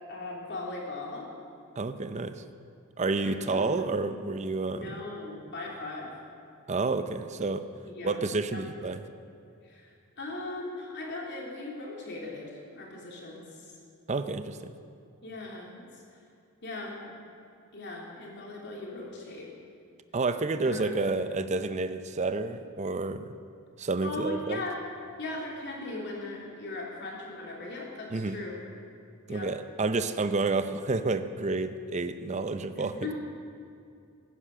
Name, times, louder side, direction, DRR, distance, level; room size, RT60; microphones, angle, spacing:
voice 1, 0.1-1.3 3.1-3.7 4.7-6.1 7.9-8.2 8.5-8.6 9.6-13.8 15.2-15.9 16.6-17.2 17.7-19.5 20.6-21.0 24.0-24.8 25.2-28.6 29.3-29.5 32.7-33.1, left 2 dB, 50° left, -2 dB, 3.3 m, -38 dB
voice 2, 1.8-2.4 3.0-5.0 6.7-7.7 8.0-9.0 14.1-14.7 20.1-23.2 23.8-24.6 28.1-28.4 29.3-33.1, right 3 dB, 30° right, 10 dB, 0.6 m, -30 dB
17.0 x 10.0 x 6.7 m, 2.5 s
head